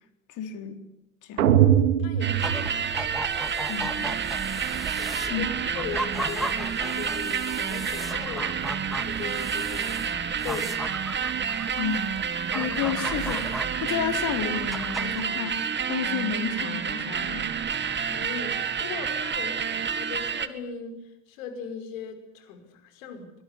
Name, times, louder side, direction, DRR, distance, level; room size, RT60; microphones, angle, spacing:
voice 1, 0.3-0.8 1.2-1.5 3.7-4.1 5.3-5.4 11.8-12.0 12.5-17.5, left 8 dB, 45° left, 8 dB, 4.0 m, -31 dB
sound 1, 1.4-3.5, right 10 dB, 85° right, 2.7 m, -22 dB
voice 2, 2.0-2.7 5.0-10.1 10.4-10.8 18.1-23.3, left 5 dB, 70° left, 7 dB, 5.5 m, -39 dB
sound 2, 2.2-20.5, right 7 dB, 25° right, 2.1 m, -29 dB
sound 3, 2.3-15.3, right 1 dB, ahead, 2.9 m, -37 dB
24.5 x 20.0 x 9.9 m, 0.83 s
hypercardioid pair, 95°, 42 cm